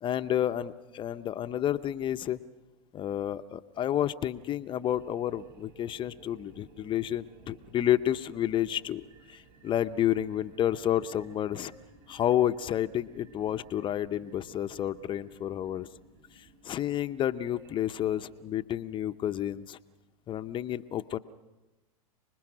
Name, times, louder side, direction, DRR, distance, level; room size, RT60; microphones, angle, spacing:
voice 1, 0.0-2.4 2.9-9.0 9.3-11.7 12.1-15.9 16.3-19.8 20.3-21.2, left 11 dB, 25° left, 10 dB, 0.7 m, -30 dB
sound 1, 4.8-18.4, right 3 dB, 50° right, 6.7 m, -57 dB
30.0 x 20.5 x 6.2 m, 1.1 s
hypercardioid pair, 115°, 18 cm